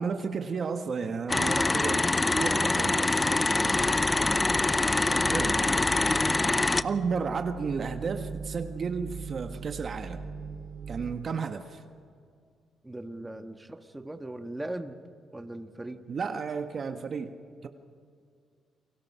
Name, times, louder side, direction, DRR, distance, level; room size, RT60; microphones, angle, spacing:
voice 1, 0.0-2.1 2.3-3.8 5.1-5.6 6.8-10.2 10.9-11.8 16.1-17.3 17.6-17.7, right 5 dB, 45° right, 7 dB, 1.4 m, -33 dB
sound 1, 1.3-6.8, left 2 dB, 20° left, 0.6 m, -25 dB
sound 2, 3.6-11.1, right 4 dB, 85° right, 2.1 m, -40 dB
voice 2, 4.4-4.9 12.8-14.9 15.3-16.0, right 1 dB, 10° right, 6 dB, 1.6 m, -39 dB
30.0 x 23.0 x 5.7 m, 2.2 s
cardioid pair, 90°, 0 cm